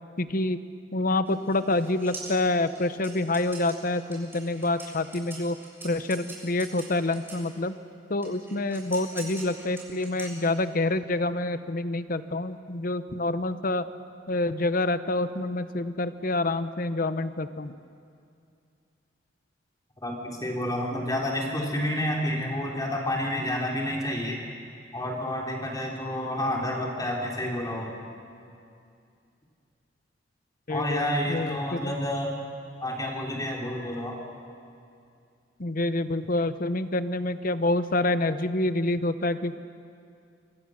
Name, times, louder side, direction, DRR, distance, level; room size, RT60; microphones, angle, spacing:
voice 1, 0.2-0.6 0.9-5.6 5.8-7.7 8.1-13.9 14.3-17.7 30.7-31.9 35.6-39.6, left 2 dB, 50° left, 12 dB, 0.9 m, -27 dB
sound 1, 1.2-7.5 8.2-10.8, right 2 dB, 15° right, 6.8 m, -44 dB
voice 2, 20.0-24.4 24.9-27.9 30.7-32.4 32.8-34.2, left 1 dB, 20° left, -1 dB, 3.6 m, -29 dB
25.5 x 25.0 x 6.5 m, 2.5 s
head